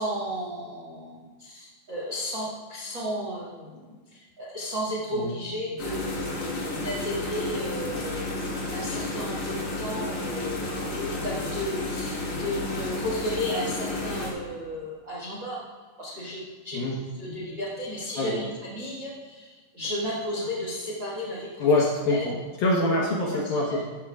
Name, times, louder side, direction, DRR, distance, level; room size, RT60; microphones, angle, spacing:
voice 1, 0.0-8.4 8.7-15.6 16.0-16.8 17.1-22.3 23.4-23.8, equal, 65° right, -5 dB, 1.1 m, -34 dB
sound 1, 5.8-14.3, left 2 dB, 45° left, 2.5 m, -32 dB
voice 2, 21.6-23.8, left 2 dB, 70° left, -3 dB, 2.4 m, -25 dB
14.0 x 13.5 x 2.4 m, 1.4 s
omnidirectional pair, 5.6 m